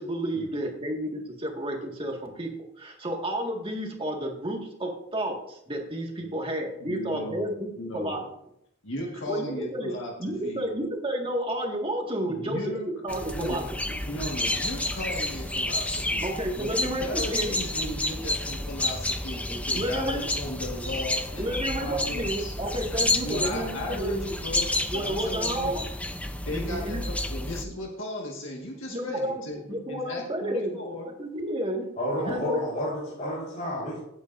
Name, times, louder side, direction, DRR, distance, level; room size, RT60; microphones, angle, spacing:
voice 1, 0.0-8.2 9.3-9.9 10.2-14.0 16.2-17.6 19.5-20.3 21.4-24.2 24.9-25.8 26.5-27.0 27.7-27.8 28.9-29.3 29.7-31.9 32.2-32.6, right 1 dB, 30° right, 1 dB, 1.9 m, -31 dB
voice 2, 6.8-8.3 8.8-10.7 12.3-12.9 13.3-13.6 14.0-16.3 16.6-22.5 23.2-25.8 26.4-31.1, left 1 dB, 75° left, -1 dB, 1.7 m, -36 dB
sound 1, 13.1-27.6, left 1 dB, 5° left, 0.7 m, -30 dB
voice 3, 32.0-34.0, left 1 dB, 40° left, -8 dB, 4.7 m, -30 dB
16.5 x 8.8 x 2.6 m, 0.76 s
head